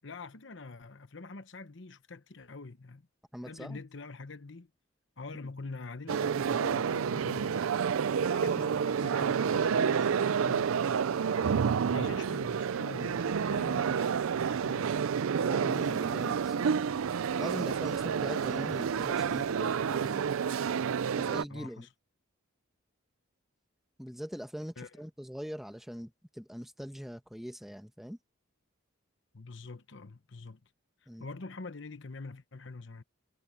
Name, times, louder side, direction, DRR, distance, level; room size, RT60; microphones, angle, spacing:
voice 1, 0.0-3.1 3.4-4.7 5.2-7.6 8.2-10.8 11.9-14.9 21.5-21.9 24.8-25.0 29.3-30.7 31.0-33.0, left 3 dB, 60° left, 1.0 m, -45 dB
voice 2, 3.3-3.8 15.4-16.8 17.4-20.3 21.2-21.9 24.0-28.2 31.1-31.3, equal, ahead, 1.2 m, -42 dB
sound 1, 6.1-21.4, right 7 dB, 90° right, 0.4 m, -29 dB
head